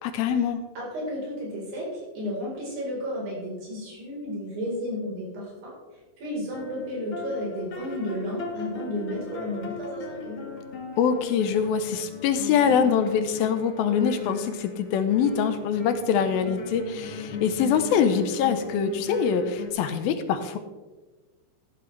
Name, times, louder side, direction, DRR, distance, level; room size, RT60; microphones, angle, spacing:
voice 1, 0.0-0.6 11.0-20.6, left 7 dB, 80° left, 9 dB, 2.6 m, -24 dB
voice 2, 0.8-5.8 6.2-10.4, left 1 dB, 70° right, -4 dB, 6.2 m, -32 dB
sound 1, 6.5-19.7, left 3 dB, 45° left, 1.9 m, -37 dB
13.5 x 11.5 x 3.3 m, 1.2 s
omnidirectional pair, 4.3 m